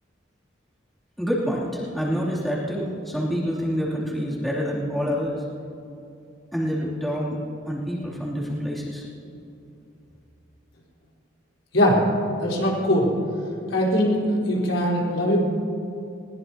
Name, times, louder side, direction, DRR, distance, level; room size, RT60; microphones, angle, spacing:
voice 1, 1.2-5.4 6.5-7.4 7.6-9.0, equal, ahead, -6 dB, 2.8 m, -27 dB
voice 2, 12.4-13.1 13.7-15.4, equal, 85° left, -4 dB, 4.0 m, -21 dB
21.5 x 19.0 x 2.9 m, 2.7 s
head